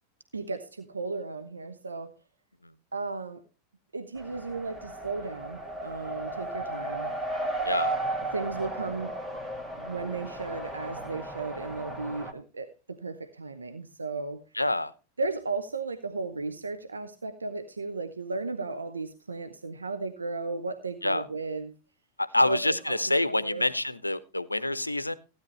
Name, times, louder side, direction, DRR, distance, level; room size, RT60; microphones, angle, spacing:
voice 1, 0.3-2.2 2.9-3.4 3.9-7.1 8.3-9.2 9.8-14.4 15.2-21.7 22.3-23.7, right 3 dB, 75° right, 0.7 m, -35 dB
Race car auto racing, 4.2-12.3, right 2 dB, 15° right, 1.9 m, -35 dB
voice 2, 14.6-14.9 21.0-21.2 22.2-25.2, left 2 dB, 85° left, 0.6 m, -26 dB
15.5 x 9.6 x 3.1 m
figure-of-eight pair, 90°, 0 cm